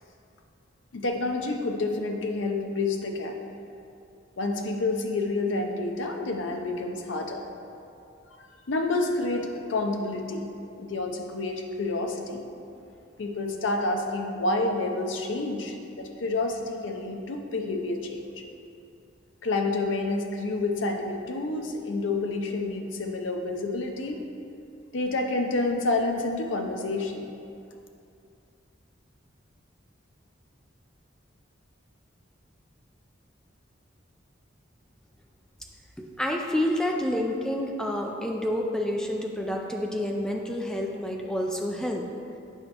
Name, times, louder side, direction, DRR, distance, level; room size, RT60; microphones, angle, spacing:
voice 1, 0.9-3.4 4.4-7.4 8.3-10.5 10.8-12.4 13.2-18.2 19.4-24.3 24.9-27.3, left 2 dB, 75° left, 3 dB, 0.6 m, -29 dB
voice 2, 36.0-42.0, left 1 dB, 5° left, 1 dB, 0.4 m, -29 dB
8.0 x 5.2 x 2.9 m, 2.6 s
head